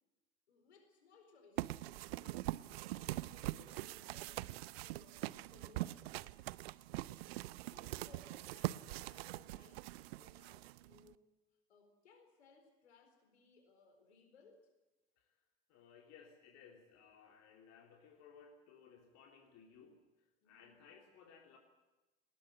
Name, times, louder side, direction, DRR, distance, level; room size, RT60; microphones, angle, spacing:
voice 1, 0.5-2.5 2.9-4.6 4.8-6.1 7.6-11.3 11.7-14.7 20.4-20.8, left 4 dB, 75° left, 5 dB, 4.4 m, -65 dB
sound 1, 1.6-11.1, right 17 dB, 65° right, 0.7 m, -43 dB
voice 2, 15.7-21.6, left 6 dB, 50° left, 2 dB, 3.2 m, -61 dB
20.0 x 18.5 x 9.4 m, 1.1 s
figure-of-eight pair, 70°, 33 cm